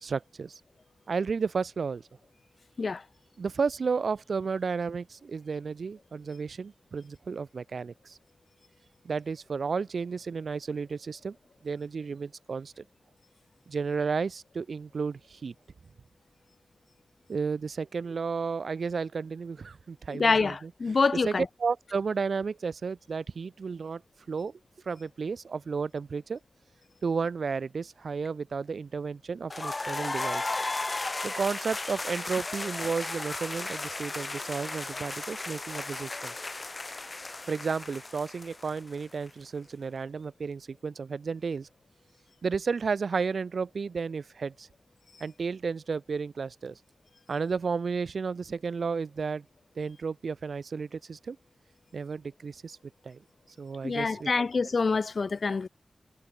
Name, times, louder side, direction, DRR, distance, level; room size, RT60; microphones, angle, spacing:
voice 1, 0.0-0.6 1.1-2.0 3.4-8.2 9.0-11.4 11.6-12.8 13.7-15.5 17.3-20.7 21.1-24.0 24.3-24.5 24.9-26.4 27.0-30.5 31.2-36.3 37.5-41.7 42.4-44.7 45.2-46.8 47.3-49.5 49.8-51.4 51.9-52.8 53.0-53.2 53.6-54.7, right 5 dB, 75° right, 1.8 m, -32 dB
voice 2, 20.2-21.4 53.8-55.7, left 4 dB, 60° left, 0.5 m, -26 dB
sound 1, 29.5-39.3, left 2 dB, 35° left, 5.3 m, -35 dB
wide cardioid pair, 80°, 0 cm